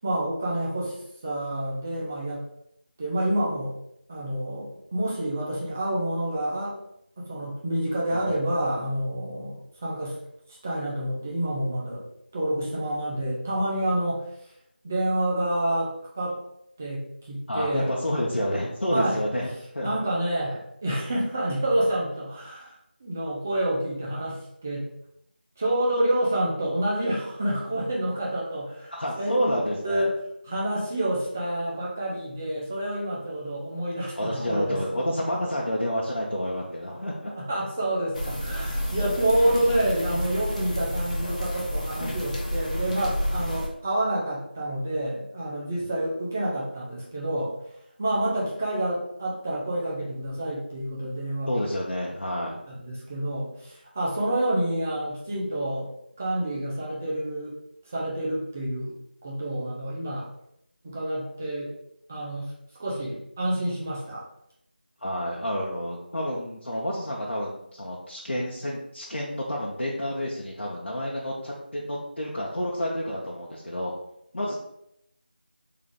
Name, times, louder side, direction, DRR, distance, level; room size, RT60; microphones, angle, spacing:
voice 1, 0.0-2.5 3.0-3.7 4.1-6.8 7.2-10.2 10.6-12.0 12.3-14.2 14.8-16.4 16.8-17.9 18.9-19.2 19.8-24.9 25.6-30.1 30.4-34.8 37.3-47.5 48.0-51.6 52.7-55.9 56.2-57.6 57.9-59.0 59.2-60.3 60.8-61.7 62.1-62.5 62.8-64.2, right 1 dB, 10° right, -4 dB, 0.5 m, -28 dB
voice 2, 17.5-19.5 19.7-20.0 28.9-30.0 34.2-37.3 38.9-39.1 45.8-45.9 51.5-52.6 65.0-73.9 74.3-74.5, equal, 85° left, -4 dB, 0.8 m, -29 dB
sound 1, 38.1-43.7, equal, 40° left, 0.7 m, -30 dB
3.8 x 2.4 x 3.6 m, 0.77 s
figure-of-eight pair, 170°, 6 cm